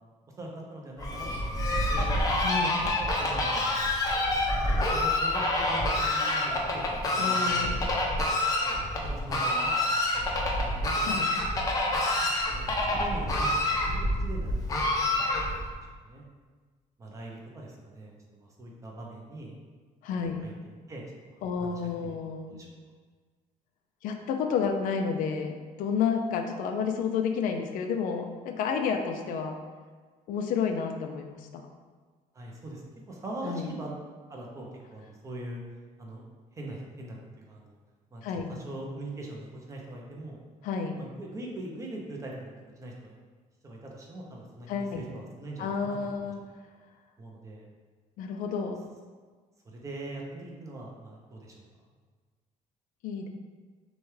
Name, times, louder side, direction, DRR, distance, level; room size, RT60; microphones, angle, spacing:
voice 1, 0.4-2.1 2.5-3.8 4.3-8.0 8.6-11.3 12.2-15.8 16.0-16.2 17.0-19.5 20.1-21.0 21.6-21.7 22.0-22.2 22.5-22.7 32.3-32.8 33.1-33.9 34.3-35.6 36.0-36.2 36.5-37.8 38.1-38.2 38.5-40.4 40.9-43.2 43.6-46.3 47.2-47.7 49.6-51.6, right 1 dB, 20° right, -2 dB, 0.6 m, -42 dB
Fowl, 1.0-15.7, left 1 dB, 25° left, 0.6 m, -27 dB
voice 2, 2.4-2.7 7.2-8.0 10.9-11.4 20.0-20.4 21.4-22.6 24.0-29.6 30.3-31.7 33.4-33.7 38.2-38.5 40.6-41.0 44.7-45.1 45.6-46.4 48.2-48.8 53.0-53.3, left 6 dB, 70° left, 5 dB, 0.4 m, -30 dB
6.2 x 2.3 x 3.2 m, 1.5 s
cardioid pair, 170°, 15 cm